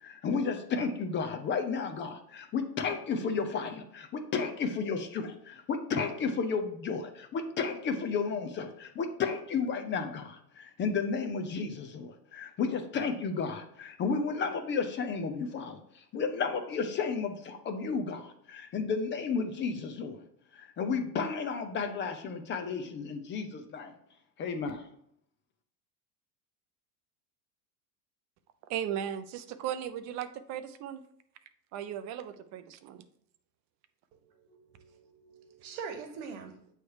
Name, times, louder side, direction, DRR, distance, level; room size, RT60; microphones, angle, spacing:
voice 1, 0.0-20.2 20.5-23.9 24.4-24.8, left 5 dB, 25° left, 0.6 m, -33 dB
voice 2, 28.7-31.0 31.7-33.0, right 10 dB, 35° right, 0.5 m, -36 dB
voice 3, 34.2-36.7, right 6 dB, 60° right, 1.3 m, -44 dB
8.2 x 3.3 x 4.7 m
supercardioid pair, 135°, 49 cm